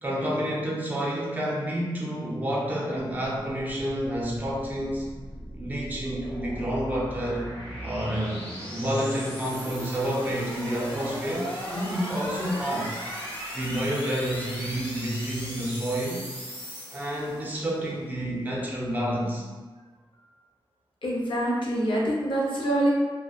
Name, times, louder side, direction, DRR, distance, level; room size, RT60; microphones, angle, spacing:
voice 1, 0.0-5.1 5.6-7.5 7.8-13.0 13.5-16.2 16.9-19.4, equal, 20° right, -4 dB, 0.5 m, -29 dB
sound 1, 4.1-17.7, equal, 15° left, 0.8 m, -37 dB
voice 2, 21.0-22.9, right 1 dB, 65° left, -4 dB, 0.6 m, -25 dB
2.6 x 2.1 x 2.3 m, 1.4 s
wide cardioid pair, 115°, 9 cm